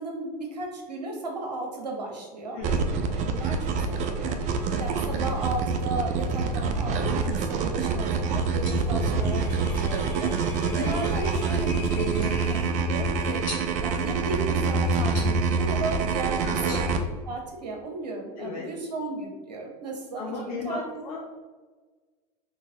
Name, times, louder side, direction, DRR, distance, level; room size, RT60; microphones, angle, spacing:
voice 1, 0.0-2.6 3.1-10.3 10.7-13.4 13.8-16.9 17.3-20.8, right 2 dB, 80° right, 1 dB, 0.7 m, -35 dB
voice 2, 2.5-3.1 16.4-16.9 18.4-18.7 20.2-21.2, left 4 dB, 60° left, -2 dB, 0.6 m, -35 dB
sound 1, 2.6-17.0, right 4 dB, 35° right, 0.4 m, -26 dB
sound 2, 8.3-17.8, left 1 dB, 40° left, 1.2 m, -46 dB
sound 3, 8.4-12.7, left 3 dB, 10° left, 0.7 m, -44 dB
3.9 x 2.8 x 2.6 m, 1.4 s
figure-of-eight pair, 80°, 21 cm